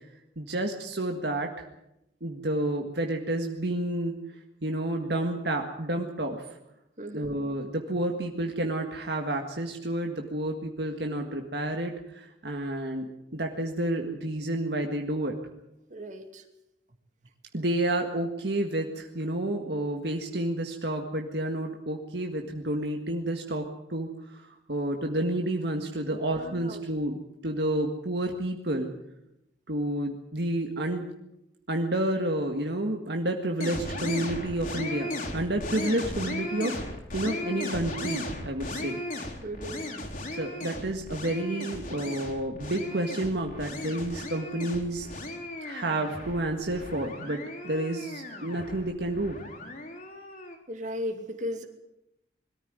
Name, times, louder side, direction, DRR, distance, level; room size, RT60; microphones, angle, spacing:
voice 1, 0.4-1.5 2.2-4.2 4.6-6.5 7.1-15.4 17.5-28.9 29.7-31.0 31.7-36.8 37.1-39.0 40.3-45.1 45.6-49.4, right 1 dB, 60° right, 3 dB, 1.8 m, -30 dB
voice 2, 7.0-7.3 15.9-16.4 26.1-26.8 39.4-39.9 50.7-51.7, equal, 40° right, 6 dB, 2.4 m, -36 dB
sound 1, 33.6-50.6, left 1 dB, 45° left, 4.1 m, -36 dB
22.0 x 14.0 x 9.4 m, 0.84 s
head